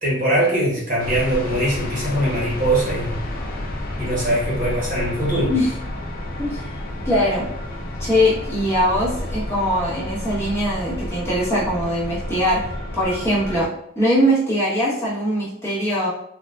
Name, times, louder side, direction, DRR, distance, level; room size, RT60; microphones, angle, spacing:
voice 1, 0.0-3.2 4.0-5.5, right 1 dB, 40° right, -6 dB, 1.1 m, -21 dB
sound 1, 1.0-13.7, left 1 dB, 45° left, 0.4 m, -30 dB
voice 2, 7.0-7.5 8.0-12.6 12.9-13.7 13.9-16.1, equal, 10° left, -10 dB, 1.1 m, -21 dB
3.6 x 2.4 x 2.3 m, 0.74 s
head